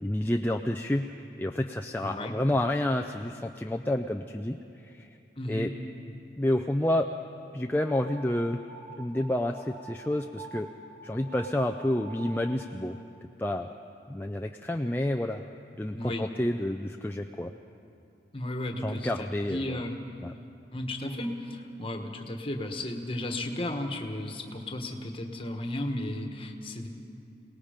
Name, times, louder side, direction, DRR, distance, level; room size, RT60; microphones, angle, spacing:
voice 1, 0.0-5.1 5.5-5.7 6.4-7.1 7.5-8.6 9.0-10.7 11.0-13.0 13.4-13.7 14.1-15.4 15.8-17.5 18.8-19.8 20.2-20.3, left 1 dB, 10° left, 3 dB, 0.4 m, -29 dB
voice 2, 2.0-2.3 5.4-5.7 15.9-16.2 18.3-20.0 20.7-26.9, left 1 dB, 30° left, 4 dB, 1.4 m, -34 dB
sound 1, 7.8-12.7, right 3 dB, 60° right, 4.1 m, -47 dB
28.0 x 19.0 x 5.1 m, 2.7 s
head